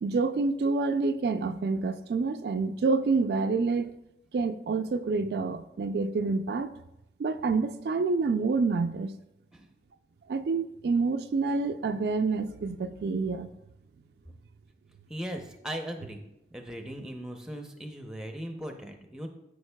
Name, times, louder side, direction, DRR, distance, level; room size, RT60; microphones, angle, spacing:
voice 1, 0.0-3.9 4.3-6.7 7.2-9.1 10.3-13.5, right 4 dB, 65° right, 9 dB, 0.3 m, -27 dB
voice 2, 15.1-16.2 16.5-19.3, equal, 5° right, 4 dB, 0.6 m, -38 dB
12.5 x 5.2 x 2.2 m, 0.86 s
head